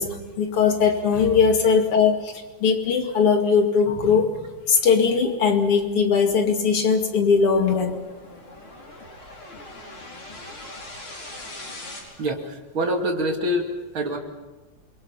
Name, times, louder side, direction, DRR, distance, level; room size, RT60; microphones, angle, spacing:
voice 1, 0.0-2.3 2.6-4.3 4.7-8.0, left 5 dB, 85° left, 3 dB, 3.3 m, -20 dB
sound 1, 5.3-12.0, left 2 dB, 70° left, 5.7 m, -42 dB
voice 2, 12.2-13.7 13.9-14.2, equal, 65° right, 2 dB, 3.3 m, -25 dB
28.0 x 23.5 x 5.7 m, 1.2 s
omnidirectional pair, 2.4 m